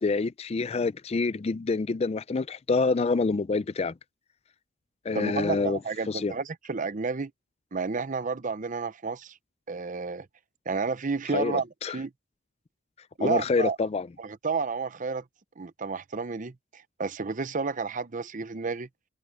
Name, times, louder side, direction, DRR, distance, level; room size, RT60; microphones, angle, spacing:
voice 1, 0.0-3.9 5.1-5.8 6.1-6.3 11.3-11.9 13.2-14.1, left 4 dB, 30° left, 0.4 m, -27 dB
voice 2, 5.1-7.3 7.7-9.4 9.7-10.3 10.7-12.1 13.2-13.8 14.2-15.2 15.6-18.9, right 4 dB, 40° right, 0.7 m, -31 dB
head